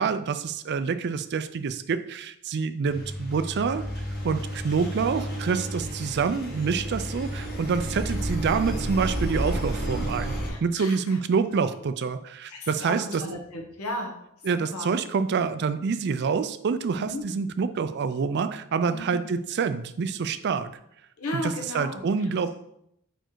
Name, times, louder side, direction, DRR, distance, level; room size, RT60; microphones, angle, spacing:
voice 1, 0.0-3.8 4.2-13.2 14.4-20.7 21.3-22.5, right 5 dB, 50° right, 11 dB, 0.4 m, -27 dB
Engine, 2.9-10.5, equal, 45° left, 1.6 m, -31 dB
voice 2, 10.4-11.0 12.5-14.2 14.7-14.9 15.3-15.4 17.0-17.2 18.9-19.4 21.2-22.0, left 1 dB, 85° left, 2 dB, 1.2 m, -34 dB
4.5 x 4.5 x 4.6 m, 0.76 s
head